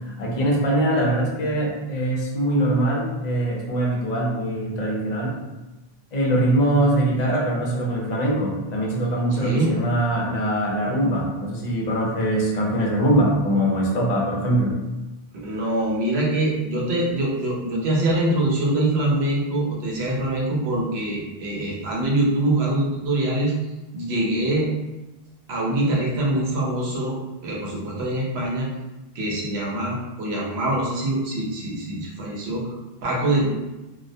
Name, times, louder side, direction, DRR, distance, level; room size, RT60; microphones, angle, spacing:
voice 1, 0.1-5.4 6.1-14.7, right 1 dB, 50° left, -2 dB, 0.6 m, -22 dB
voice 2, 9.4-9.7 15.4-23.5 23.9-24.7 25.5-27.2 27.4-28.7 29.1-32.8 33.0-33.5, right 1 dB, 90° right, -3 dB, 0.9 m, -24 dB
2.3 x 2.1 x 2.5 m, 1.0 s
omnidirectional pair, 1.0 m